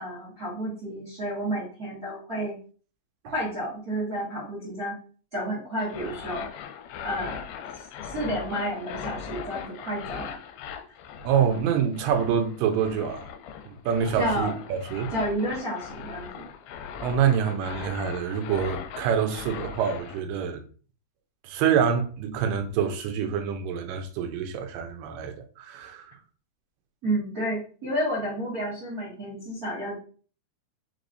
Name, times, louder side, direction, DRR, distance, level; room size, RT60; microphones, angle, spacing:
voice 1, 0.0-2.6 3.2-4.9 5.3-6.4 7.0-7.4 7.7-10.3 14.2-14.5 15.1-16.4 27.0-30.0, right 1 dB, 45° right, 1.2 m, -31 dB
sound 1, 5.8-20.2, left 7 dB, 85° left, 2.4 m, -39 dB
voice 2, 11.2-13.2 13.7-15.1 17.0-20.6 21.4-26.1, right 7 dB, 75° right, 2.2 m, -26 dB
5.4 x 3.2 x 2.6 m
omnidirectional pair, 4.3 m